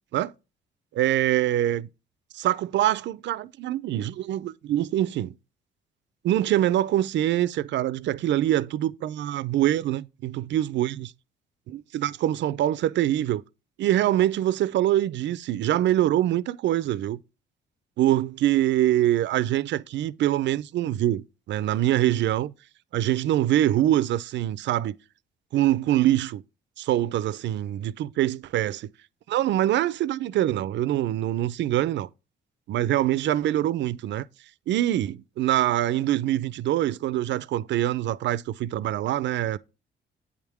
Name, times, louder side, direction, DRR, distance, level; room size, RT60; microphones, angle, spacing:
voice 1, 0.9-1.9 2.3-5.3 6.2-11.1 11.7-13.4 13.8-17.2 18.0-22.5 22.9-25.0 25.5-26.4 26.8-28.9 29.3-32.1 32.7-34.2 34.7-39.6, right 13 dB, 65° right, 0.4 m, -24 dB
8.5 x 3.6 x 4.8 m
cardioid pair, 90°, 20 cm